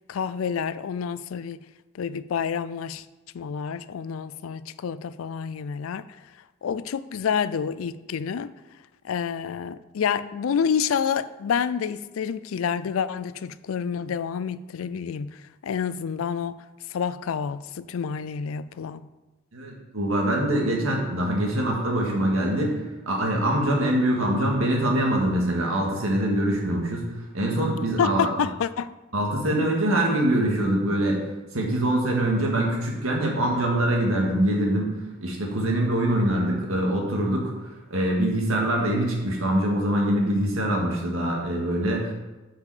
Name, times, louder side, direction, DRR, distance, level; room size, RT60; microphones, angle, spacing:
voice 1, 0.1-1.6 1.9-3.0 3.3-6.1 6.6-8.5 9.0-16.6 16.9-19.1 28.0-28.9 29.6-29.7, left 7 dB, 90° left, 0.4 m, -28 dB
voice 2, 19.5-22.8 23.1-27.1 27.3-28.3 29.1-31.2 31.5-34.9 35.2-37.5 37.9-42.1, right 1 dB, 90° right, 1.9 m, -24 dB
8.4 x 5.4 x 4.9 m
head